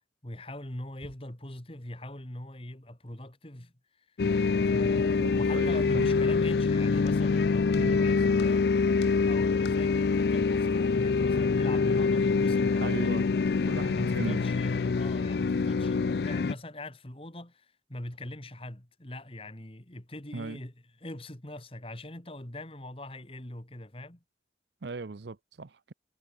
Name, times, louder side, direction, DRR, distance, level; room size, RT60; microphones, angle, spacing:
voice 1, 0.2-4.2 4.7-8.7 9.3-13.2 13.9-20.7 21.0-24.2, left 1 dB, 30° left, 2.3 m, -42 dB
sound 1, 4.2-16.5, left 4 dB, 60° left, 0.4 m, -25 dB
voice 2, 4.9-6.1 7.8-8.0 12.8-13.2 13.6-14.5 20.3-20.6 24.8-25.9, right 3 dB, 65° right, 0.7 m, -38 dB
head